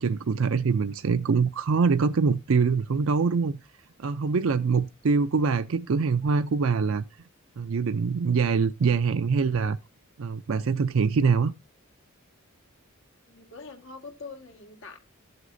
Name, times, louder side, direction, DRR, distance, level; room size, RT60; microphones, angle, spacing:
voice 1, 0.0-3.5 4.0-7.0 7.6-9.8 10.2-11.5, right 5 dB, 65° right, 0.5 m, -24 dB
voice 2, 13.2-15.0, left 4 dB, 65° left, 1.7 m, -44 dB
13.5 x 8.0 x 2.6 m
head